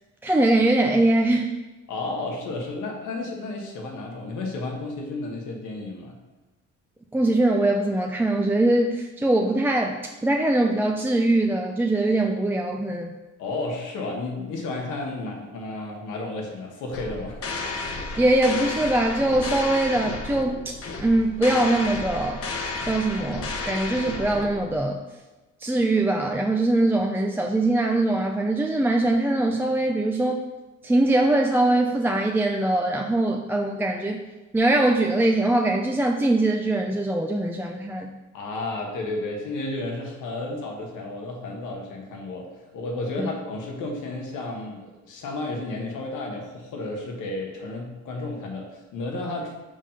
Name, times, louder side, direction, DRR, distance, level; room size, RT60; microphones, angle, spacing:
voice 1, 0.2-1.5 7.1-13.1 18.2-22.4 22.8-25.0 25.6-30.4 30.8-34.2 34.5-38.1 43.2-43.3, right 2 dB, 5° right, 1 dB, 0.4 m, -22 dB
voice 2, 1.9-6.1 13.4-17.4 38.3-42.5 42.7-49.6, left 2 dB, 85° left, 1 dB, 1.3 m, -32 dB
sound 1, 16.9-24.8, left 3 dB, 50° left, 0.9 m, -32 dB
5.2 x 3.6 x 5.6 m, 1.1 s
cardioid pair, 90°, 30 cm